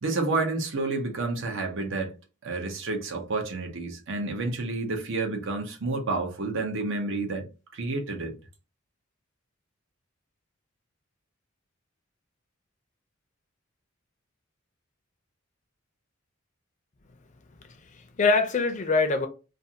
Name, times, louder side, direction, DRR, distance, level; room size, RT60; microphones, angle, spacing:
voice 1, 0.0-2.1 2.4-8.4, right 3 dB, 65° right, 0.7 m, -30 dB
voice 2, 17.6-19.3, left 3 dB, 40° left, 0.5 m, -24 dB
2.5 x 2.5 x 2.8 m
head